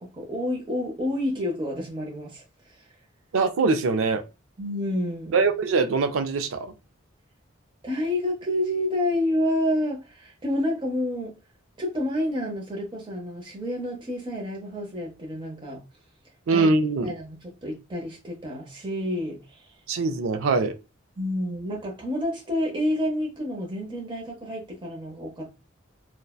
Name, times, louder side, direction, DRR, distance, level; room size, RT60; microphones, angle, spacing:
voice 1, 0.0-2.4 4.6-5.4 7.8-11.3 11.8-15.8 16.5-16.7 17.0-19.6 21.2-25.5, left 1 dB, 25° right, 0.7 m, -29 dB
voice 2, 3.3-4.2 5.3-6.7 16.5-17.1 19.9-20.7, right 4 dB, 80° right, 0.4 m, -23 dB
2.6 x 2.1 x 2.3 m
head